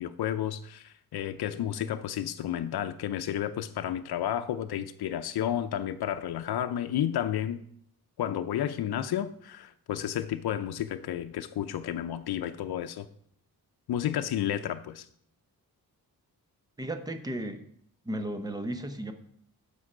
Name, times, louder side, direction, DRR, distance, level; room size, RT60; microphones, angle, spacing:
voice 1, 0.0-7.6 8.2-13.1 13.9-15.1, left 10 dB, 90° left, 0.6 m, -31 dB
voice 2, 16.8-17.6 18.0-19.1, right 1 dB, 10° right, 0.8 m, -34 dB
9.8 x 6.9 x 4.9 m
wide cardioid pair, 160°, 37 cm